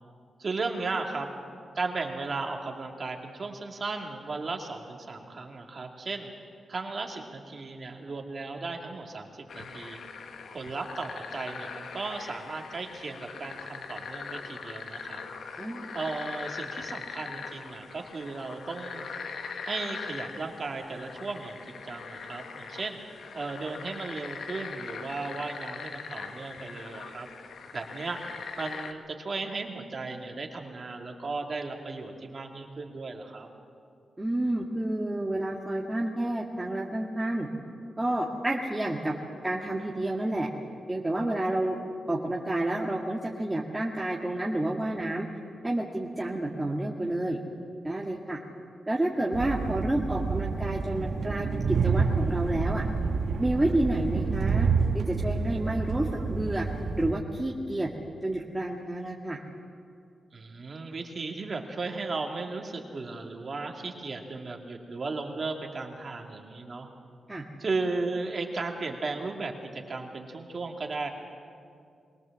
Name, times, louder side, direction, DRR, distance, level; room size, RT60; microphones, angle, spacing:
voice 1, 0.4-1.3 1.7-6.3 6.7-10.0 10.5-15.2 15.9-19.1 19.6-23.0 23.3-27.3 27.7-28.2 28.6-33.5 60.3-66.9 67.6-71.1, right 3 dB, 45° right, 2 dB, 2.5 m, -35 dB
sound 1, 9.5-28.9, left 5 dB, 75° left, 1.3 m, -41 dB
voice 2, 15.6-15.9 34.2-37.5 38.0-39.1 39.4-40.5 40.9-41.8 42.1-45.3 45.6-47.4 47.8-48.4 48.9-52.9 53.4-54.7 54.9-56.7 56.9-57.9 58.2-59.4 67.3-67.4, right 1 dB, 15° right, -2 dB, 1.8 m, -29 dB
Train, 49.3-57.1, right 4 dB, 75° right, 1.3 m, -28 dB
22.0 x 19.0 x 7.4 m, 2.3 s
cardioid pair, 80°, 0 cm